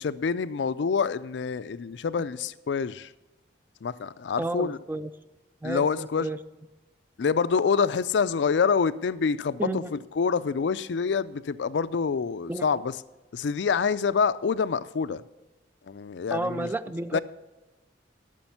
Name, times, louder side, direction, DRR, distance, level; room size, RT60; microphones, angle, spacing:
voice 1, 0.0-3.1 3.8-4.8 5.6-6.3 7.2-12.9 13.3-15.2 15.9-16.7 17.1-17.2, left 5 dB, 75° left, 15 dB, 0.4 m, -26 dB
voice 2, 4.4-5.1 5.6-6.4 9.6-9.9 12.5-12.7 16.3-17.2, right 2 dB, 10° right, 13 dB, 0.4 m, -31 dB
13.0 x 6.3 x 5.8 m, 1.1 s
head